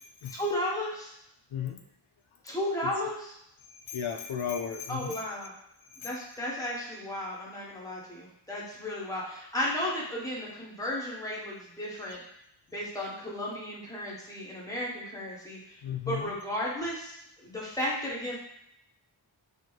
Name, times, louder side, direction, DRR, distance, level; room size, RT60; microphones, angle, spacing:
voice 1, 0.3-1.1 2.4-3.3 4.9-5.5 6.0-12.2 12.7-15.6 16.1-18.3, left 1 dB, 5° left, -5 dB, 1.2 m, -34 dB
voice 2, 3.7-5.3 15.8-16.3, left 8 dB, 85° left, 4 dB, 0.6 m, -34 dB
5.1 x 2.1 x 3.9 m, 0.77 s
wide cardioid pair, 80°, 47 cm